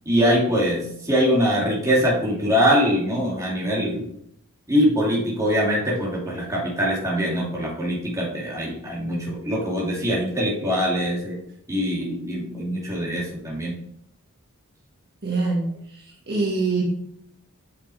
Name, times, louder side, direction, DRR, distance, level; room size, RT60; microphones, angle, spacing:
voice 1, 0.1-4.1 4.7-11.4 11.7-13.7, equal, 15° right, -5 dB, 2.7 m, -23 dB
voice 2, 15.2-16.8, right 3 dB, 50° right, -3 dB, 1.9 m, -25 dB
8.6 x 6.7 x 3.5 m, 0.72 s
head